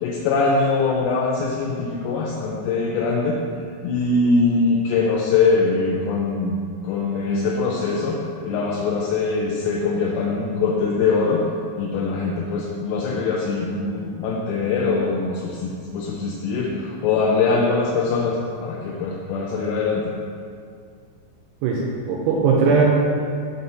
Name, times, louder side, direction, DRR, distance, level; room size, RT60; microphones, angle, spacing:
voice 1, 0.0-3.4 3.8-6.6 6.8-11.4 11.8-20.1, left 4 dB, 80° left, -3 dB, 2.7 m, -22 dB
voice 2, 21.6-22.8, right 5 dB, 85° right, -3 dB, 2.5 m, -19 dB
6.2 x 4.2 x 5.4 m, 2.2 s
omnidirectional pair, 5.3 m